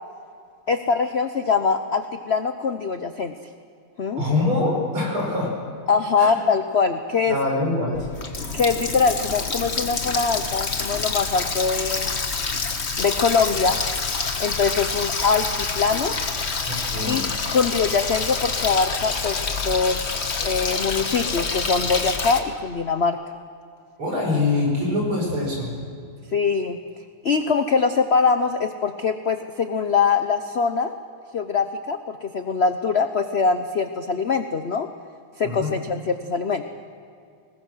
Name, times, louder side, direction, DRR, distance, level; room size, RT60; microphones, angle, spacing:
voice 1, 0.7-3.3 4.0-4.2 5.9-7.4 8.5-12.2 13.0-13.8 14.4-16.2 17.0-20.2 20.4-23.2 26.3-26.8 27.2-30.9 31.3-34.9 35.4-36.6, left 5 dB, 75° left, 8 dB, 0.5 m, -23 dB
voice 2, 4.1-5.5 6.2-6.3 7.3-8.1 16.7-17.2 24.0-25.7 35.4-35.7, left 2 dB, 80° right, -1 dB, 6.6 m, -24 dB
Water tap faucet, 7.9-22.4, left 4 dB, 35° left, 1.4 m, -27 dB
21.5 x 20.5 x 6.3 m, 2.4 s
omnidirectional pair, 2.3 m